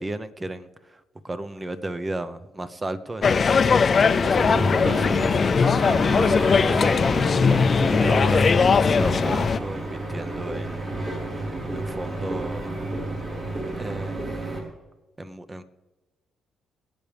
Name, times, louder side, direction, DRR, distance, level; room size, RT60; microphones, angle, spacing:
voice 1, 0.0-8.4 8.7-10.9 11.3-12.8 13.8-14.6 15.2-15.6, right 2 dB, 20° right, 11 dB, 1.0 m, -34 dB
sound 1, 3.2-9.6, left 5 dB, 40° left, 0.6 m, -20 dB
sound 2, 4.3-14.6, right 2 dB, 45° right, 4.5 m, -31 dB
23.5 x 8.9 x 3.5 m, 1.2 s
cardioid pair, 90°, 0 cm